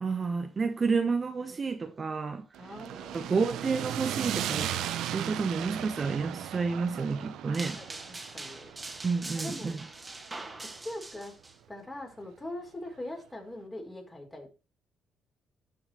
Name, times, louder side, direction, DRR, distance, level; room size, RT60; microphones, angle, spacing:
voice 1, 0.0-2.5 2.9-7.8 9.0-9.8, right 4 dB, 35° right, 1.0 m, -30 dB
sound 1, 2.5-10.8, right 11 dB, 85° right, 0.7 m, -37 dB
voice 2, 2.6-3.6 7.5-8.7 9.4-9.8 10.8-11.3 11.7-14.5, left 1 dB, 20° left, 4.4 m, -42 dB
sound 2, 7.5-11.5, right 2 dB, 20° right, 2.0 m, -42 dB
12.0 x 5.8 x 3.1 m
cardioid pair, 90°, 0 cm